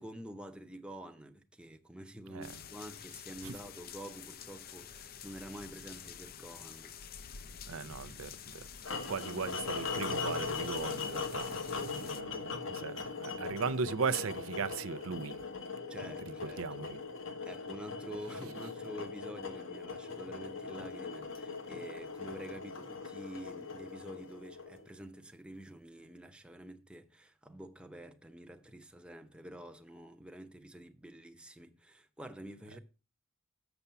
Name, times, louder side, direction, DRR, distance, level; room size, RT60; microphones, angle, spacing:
voice 1, 0.0-7.0 15.9-16.8 17.4-32.8, equal, 5° right, 0.8 m, -48 dB
sound 1, 2.4-12.2, left 8 dB, 50° left, 0.6 m, -49 dB
voice 2, 7.7-8.6 9.1-15.4 16.6-17.0, right 5 dB, 90° right, 0.5 m, -37 dB
sound 2, 8.8-25.0, left 4 dB, 70° left, 1.3 m, -40 dB
7.0 x 6.7 x 5.7 m
head